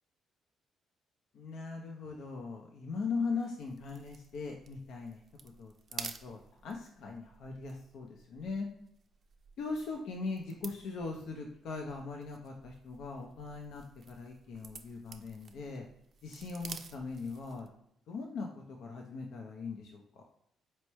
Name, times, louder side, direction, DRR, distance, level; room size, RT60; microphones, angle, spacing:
voice 1, 1.3-5.2 5.6-8.7 9.6-15.9 16.2-17.7 18.1-20.2, left 4 dB, 75° left, 1 dB, 0.6 m, -40 dB
sound 1, 3.4-17.8, right 6 dB, 50° right, 0.5 m, -51 dB
4.4 x 3.1 x 3.0 m, 0.76 s
cardioid pair, 90°, 0 cm